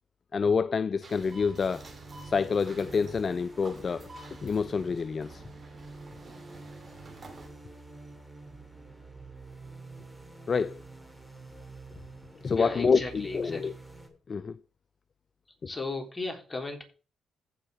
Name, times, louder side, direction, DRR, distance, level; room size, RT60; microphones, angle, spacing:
voice 1, 0.3-1.8 2.2-4.1 4.4-5.4 10.5-10.8 12.4-13.7 14.3-14.6, left 5 dB, 45° left, 0.3 m, -27 dB
sound 1, 1.0-7.5, right 3 dB, 40° right, 2.8 m, -50 dB
sound 2, 1.2-14.1, right 3 dB, 5° right, 2.4 m, -48 dB
voice 2, 12.5-13.7 15.6-16.8, left 3 dB, 25° left, 3.3 m, -35 dB
15.0 x 5.6 x 3.5 m
supercardioid pair, 65°, 0 cm